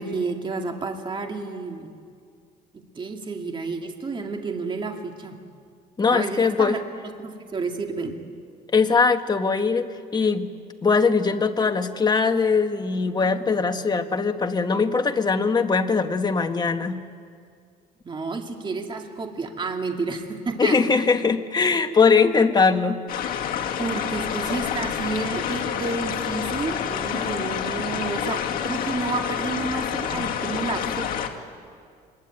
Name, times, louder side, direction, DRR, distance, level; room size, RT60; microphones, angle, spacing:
voice 1, 0.0-2.0 2.7-5.4 6.1-6.8 7.0-8.2 18.0-20.8 23.8-31.1, right 3 dB, 30° right, 4 dB, 2.2 m, -30 dB
voice 2, 6.0-6.8 8.7-10.5 10.8-17.0 20.6-23.0, left 4 dB, 25° left, 7 dB, 1.5 m, -21 dB
sound 1, 23.1-31.3, left 8 dB, 60° left, 2.3 m, -28 dB
24.5 x 22.0 x 8.9 m, 2.2 s
cardioid pair, 110°, 17 cm